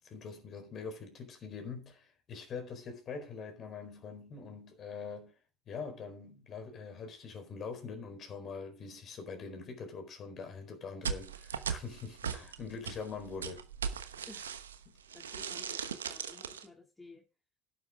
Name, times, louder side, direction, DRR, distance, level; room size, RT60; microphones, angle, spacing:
voice 1, 0.0-5.3 5.7-14.0 14.9-15.0, left 5 dB, 45° left, 4.4 m, -44 dB
sound 1, 11.0-14.8 15.1-16.6, right 7 dB, 85° right, 1.0 m, -38 dB
voice 2, 15.1-17.2, left 2 dB, 15° left, 2.7 m, -54 dB
12.0 x 9.0 x 3.7 m
hypercardioid pair, 70°, 0 cm